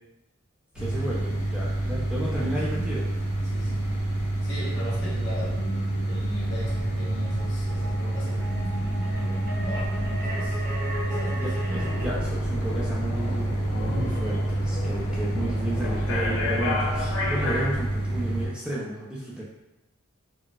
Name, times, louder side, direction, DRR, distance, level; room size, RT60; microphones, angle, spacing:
sound 1, 0.7-18.5, right 1 dB, 20° left, 1.0 m, -28 dB
voice 1, 0.7-3.0 11.4-19.4, right 1 dB, 5° right, -6 dB, 0.3 m, -33 dB
voice 2, 2.4-2.9 3.4-3.9 4.4-10.6 11.0-11.8, equal, 55° left, -7 dB, 1.0 m, -37 dB
sound 2, 6.7-12.1, equal, 40° right, 0.9 m, -38 dB
sound 3, 11.7-17.7, left 2 dB, 70° left, 0.6 m, -32 dB
3.9 x 2.1 x 2.3 m, 0.97 s
head